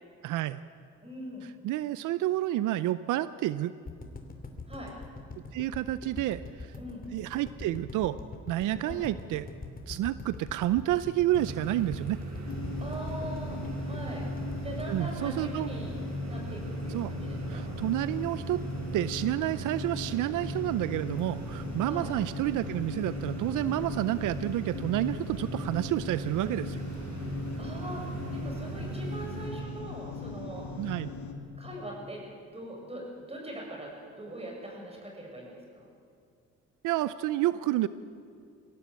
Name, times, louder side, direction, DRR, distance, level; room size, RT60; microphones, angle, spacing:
voice 1, 0.2-0.6 1.6-3.7 5.5-6.7 7.1-8.2 8.5-9.5 9.9-12.2 14.9-15.7 16.9-17.1 17.5-18.6 18.9-26.8 30.8-31.1 36.8-37.9, right 14 dB, 85° right, 15 dB, 0.6 m, -29 dB
voice 2, 1.0-1.5 4.7-4.9 6.8-7.0 8.9-9.0 12.8-14.3 14.6-15.9 16.3-17.7 21.8-22.1 27.6-30.7 31.6-32.2 32.5-33.9 34.2-35.8, right 1 dB, 20° right, -1 dB, 7.3 m, -41 dB
sound 1, 3.9-16.0 16.3-16.4 16.6-16.7, left 3 dB, 30° left, 2.9 m, -43 dB
sound 2, 11.3-29.5, right 2 dB, 60° right, 4.5 m, -39 dB
sound 3, 12.5-31.3, left 3 dB, 65° left, 2.4 m, -39 dB
22.5 x 17.0 x 8.3 m, 2.3 s
cardioid pair, 90°, 30 cm